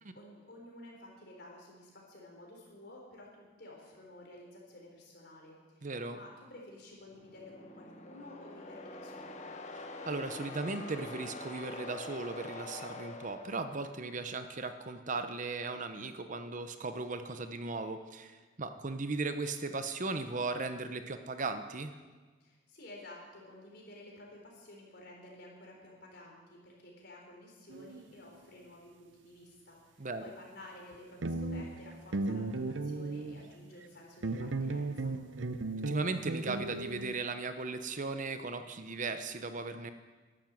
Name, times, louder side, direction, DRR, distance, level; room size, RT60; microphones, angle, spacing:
voice 1, 0.0-9.4 22.4-35.2, left 1 dB, 60° left, -1 dB, 4.2 m, -52 dB
voice 2, 5.8-6.2 9.8-21.9 30.0-30.2 35.9-39.9, right 3 dB, 40° right, 9 dB, 0.8 m, -37 dB
sound 1, 7.1-14.2, left 2 dB, 35° left, 1.1 m, -45 dB
sound 2, 27.7-28.0 30.9-31.0 31.2-33.6 34.2-37.2, right 2 dB, 70° right, 0.7 m, -36 dB
12.0 x 11.0 x 7.7 m, 1.4 s
head